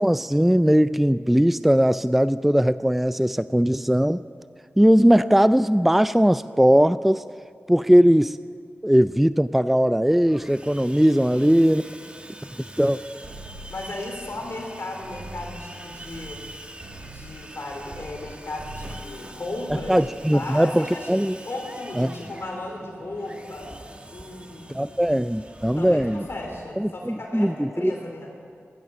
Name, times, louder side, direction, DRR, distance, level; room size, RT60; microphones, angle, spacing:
voice 1, 0.0-4.2 4.8-7.2 7.7-8.4 8.8-11.8 12.8-13.0 19.9-21.4 22.0-22.1 24.7-26.2 26.8-27.9, equal, 5° right, 15 dB, 0.3 m, -19 dB
Sawing, 10.3-26.7, right 1 dB, 25° right, 1.3 m, -44 dB
voice 2, 11.2-11.6 13.7-16.4 17.1-21.1 21.4-23.7 24.1-25.0 25.8-28.3, left 2 dB, 60° left, 0 dB, 2.8 m, -35 dB
sound 1, 13.2-14.7 15.0-18.3 18.6-19.1 19.5-20.1, right 1 dB, 75° right, 3.2 m, -42 dB
14.5 x 13.5 x 7.1 m, 2.2 s
cardioid pair, 55°, 5 cm